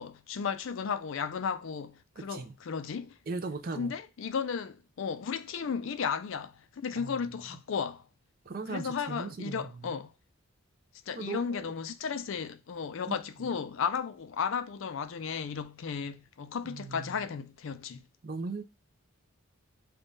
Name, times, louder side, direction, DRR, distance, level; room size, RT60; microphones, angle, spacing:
voice 1, 0.0-3.2 3.8-8.0 8.7-10.1 11.1-18.1, left 6 dB, 65° left, 0.4 m, -34 dB
voice 2, 2.2-2.5 3.3-3.9 7.0-7.2 8.4-9.9 11.1-11.7 13.1-13.2 16.6-17.1 18.2-18.6, right 3 dB, 45° right, 0.5 m, -38 dB
3.6 x 2.3 x 3.8 m
head